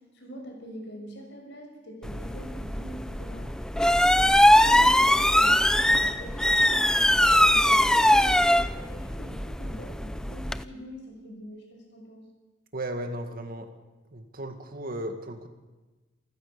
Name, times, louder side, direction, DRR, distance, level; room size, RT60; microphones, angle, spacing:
voice 1, 0.1-3.5 3.8-12.3, equal, 65° left, 2 dB, 6.7 m, -44 dB
sound 1, 2.0-10.6, left 1 dB, 5° left, 0.6 m, -22 dB
voice 2, 12.7-13.7 14.1-15.5, right 1 dB, 50° right, 6 dB, 2.2 m, -35 dB
27.5 x 15.0 x 7.0 m, 1.2 s
head